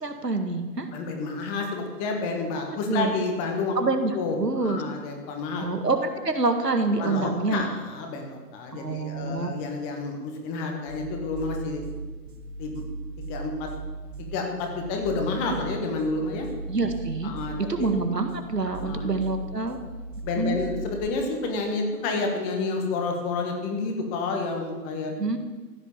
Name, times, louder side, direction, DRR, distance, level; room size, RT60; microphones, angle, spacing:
voice 1, 0.0-0.9 2.9-3.1 3.8-4.8 5.6-7.7 8.7-9.5 16.7-17.3 17.6-19.8 20.4-20.6 25.2-25.4, right 3 dB, 80° right, 6 dB, 2.0 m, -26 dB
voice 2, 0.9-3.8 4.1-5.7 7.0-11.8 12.6-12.8 13.2-13.7 14.2-16.5 17.2-17.9 18.8-19.1 20.2-25.1, left 3 dB, 15° left, 2 dB, 1.7 m, -29 dB
sound 1, 10.9-21.1, right 3 dB, 30° right, 1.5 m, -38 dB
15.0 x 8.7 x 7.3 m, 1.3 s
figure-of-eight pair, 135°, 48 cm